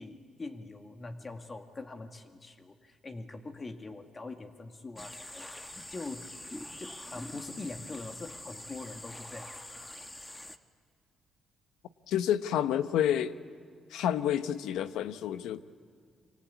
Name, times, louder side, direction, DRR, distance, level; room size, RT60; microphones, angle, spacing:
voice 1, 0.0-5.5 5.9-6.3 6.8-9.8 10.2-10.3, left 3 dB, 35° left, 5 dB, 2.0 m, -43 dB
sound 1, 5.0-10.6, left 1 dB, 15° left, 1.4 m, -45 dB
voice 2, 12.1-13.3 13.9-15.6, left 10 dB, 90° left, 12 dB, 0.9 m, -29 dB
27.0 x 25.0 x 8.4 m, 2.1 s
cardioid pair, 75°, 0 cm